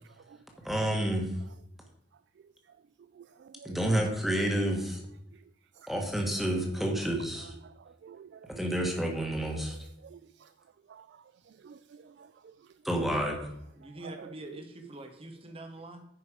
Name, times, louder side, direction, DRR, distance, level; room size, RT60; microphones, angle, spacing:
voice 1, 0.6-1.3 3.6-5.0 5.9-7.5 8.5-9.8 12.8-13.4, right 1 dB, ahead, 1 dB, 1.4 m, -29 dB
voice 2, 3.2-3.8 5.8-5.9 7.6-7.7 8.0-8.5 9.7-10.5 10.9-11.2 11.5-12.5 14.0-14.1, right 7 dB, 60° right, 14 dB, 0.3 m, -52 dB
voice 3, 13.8-16.0, right 1 dB, 30° right, 5 dB, 1.0 m, -44 dB
9.6 x 5.3 x 4.9 m, 0.79 s
head